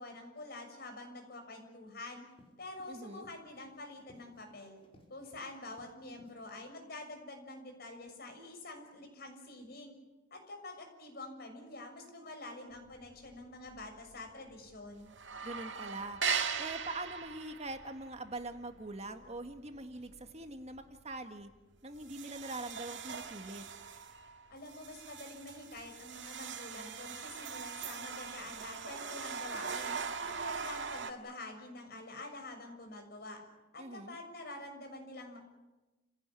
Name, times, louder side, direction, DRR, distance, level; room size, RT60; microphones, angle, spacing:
voice 1, 0.0-2.3 2.6-4.8 5.1-10.0 10.3-15.1 24.5-29.9 30.3-33.4 33.7-35.4, left 2 dB, 55° left, 4 dB, 6.7 m, -47 dB
Run, 1.8-6.4, equal, 30° left, 5.5 m, -64 dB
voice 2, 2.9-3.3 15.4-16.2 16.6-21.5 21.8-23.6 33.8-34.2, right 2 dB, 35° right, 6 dB, 1.8 m, -43 dB
sound 1, 12.9-13.4 13.7-13.8 14.1-14.7 15.0-20.3 20.6-20.9 21.4-21.5 22.0-31.1, right 6 dB, 75° right, 2.1 m, -40 dB
29.5 x 17.0 x 9.8 m, 1.1 s
head